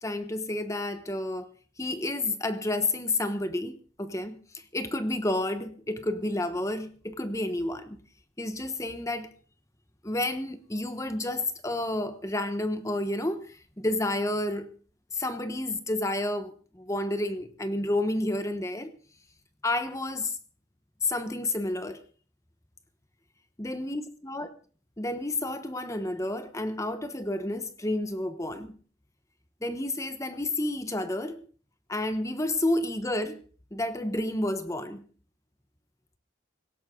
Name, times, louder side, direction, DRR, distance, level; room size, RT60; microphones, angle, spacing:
voice 1, 0.0-1.5 1.8-8.0 8.4-9.3 10.0-14.7 15.1-18.9 19.6-20.4 21.0-22.0 23.6-24.5 25.0-28.7 29.6-31.4 31.9-33.4 33.7-35.0, left 1 dB, 15° left, 1.1 m, -30 dB
18.0 x 16.5 x 3.8 m
head